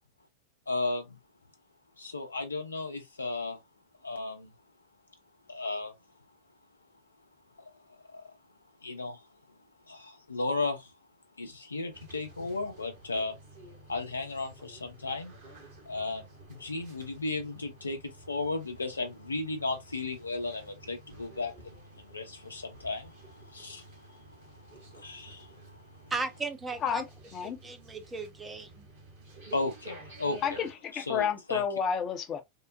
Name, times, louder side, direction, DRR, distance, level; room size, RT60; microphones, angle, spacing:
voice 1, 0.7-1.2 2.0-3.6 4.0-4.5 5.5-5.9 8.1-8.2 8.8-9.2 9.9-10.9 11.4-13.4 13.9-15.3 15.9-16.2 16.5-25.8 29.5-30.6 30.9-31.6, left 3 dB, 80° left, 0.7 m, -35 dB
sound 1, 11.9-30.7, right 2 dB, 55° right, 1.4 m, -51 dB
voice 2, 26.1-27.0 27.4-28.9, right 3 dB, 15° right, 0.6 m, -36 dB
voice 3, 30.4-32.4, left 7 dB, 30° left, 0.6 m, -30 dB
3.7 x 2.1 x 2.5 m
figure-of-eight pair, 90°, 0 cm